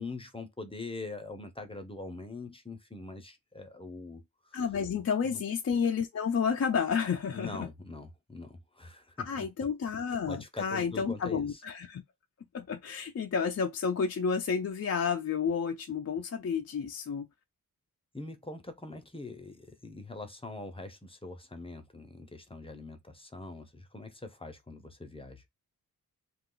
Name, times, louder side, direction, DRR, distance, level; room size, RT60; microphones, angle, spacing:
voice 1, 0.0-4.6 5.2-5.4 7.3-9.5 10.3-11.6 18.1-25.4, left 3 dB, 15° left, 0.7 m, -43 dB
voice 2, 4.5-7.7 9.3-12.0 12.5-17.3, left 6 dB, 45° left, 0.5 m, -31 dB
2.4 x 2.3 x 3.8 m
cardioid pair, 60°, 37 cm